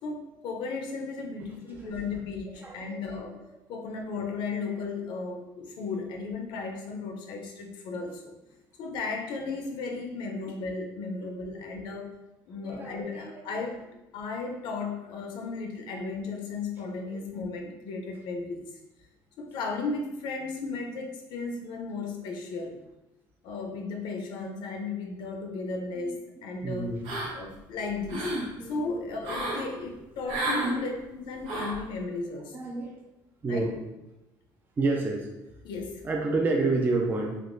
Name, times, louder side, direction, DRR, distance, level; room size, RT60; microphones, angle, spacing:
voice 1, 0.0-3.4 3.7-8.3 8.8-12.1 12.5-13.8 14.1-18.6 19.4-22.8 23.4-26.9 27.3-28.3 28.6-32.6 33.5-33.6 35.6-36.0, left 4 dB, 70° left, 3 dB, 0.6 m, -35 dB
voice 2, 2.6-3.2 12.6-13.3 26.0-26.2 26.6-27.1 28.6-29.0 30.4-30.9 32.5-32.9 33.4-33.8 34.8-35.3 36.0-37.4, right 3 dB, 25° right, 1 dB, 0.4 m, -29 dB
sound 1, 27.0-27.6 27.9-28.5 29.2-29.6 30.3-30.7 31.4-31.8, right 1 dB, 80° right, 1.0 m, -31 dB
3.5 x 2.8 x 2.6 m, 0.95 s
cardioid pair, 135°, 8 cm